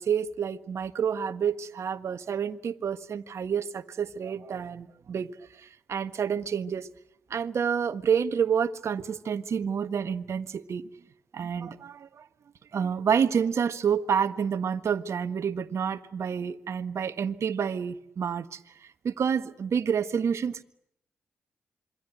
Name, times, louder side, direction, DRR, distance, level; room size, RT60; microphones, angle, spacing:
voice 1, 0.0-5.3 5.9-6.9 7.3-10.9 11.3-12.2 12.7-18.6 19.0-20.6, right 7 dB, 60° right, 11 dB, 1.5 m, -28 dB
26.5 x 24.0 x 9.3 m, 0.77 s
hypercardioid pair, 40°, 6 cm